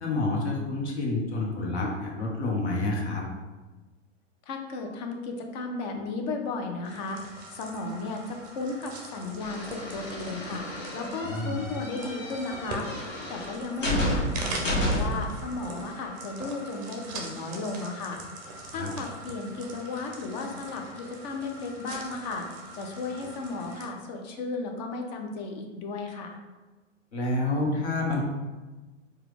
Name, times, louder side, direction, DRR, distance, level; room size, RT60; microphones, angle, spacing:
voice 1, 0.0-3.2 11.2-11.6 18.7-18.9 27.1-28.2, left 2 dB, 60° left, -1 dB, 1.2 m, -28 dB
voice 2, 4.5-18.2 18.7-26.4, left 3 dB, 35° left, 3 dB, 0.6 m, -35 dB
sound 1, 6.8-23.9, right 2 dB, 20° right, 0.6 m, -42 dB
sound 2, 9.4-15.3, left 1 dB, 80° left, 1.1 m, -31 dB
4.6 x 2.4 x 3.3 m, 1.2 s
figure-of-eight pair, 110°, 37 cm